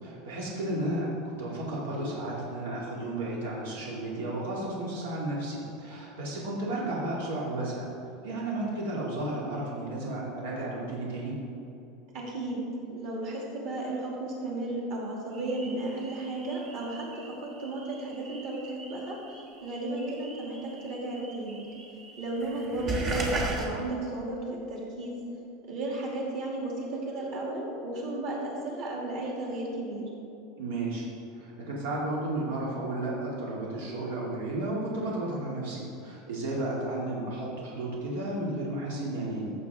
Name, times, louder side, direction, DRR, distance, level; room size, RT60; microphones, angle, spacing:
voice 1, 0.0-7.9 8.2-11.4 22.8-23.1 30.6-31.0 31.3-39.5, right 1 dB, 85° right, -4 dB, 2.4 m, -33 dB
voice 2, 12.1-17.2 17.6-19.2 19.6-21.6 22.2-24.4 24.7-25.1 25.7-30.0, right 2 dB, 45° right, -3 dB, 2.5 m, -34 dB
sound 1, 15.3-23.7, right 2 dB, 25° right, 1.3 m, -38 dB
15.0 x 7.0 x 3.6 m, 2.7 s
supercardioid pair, 175°, 0 cm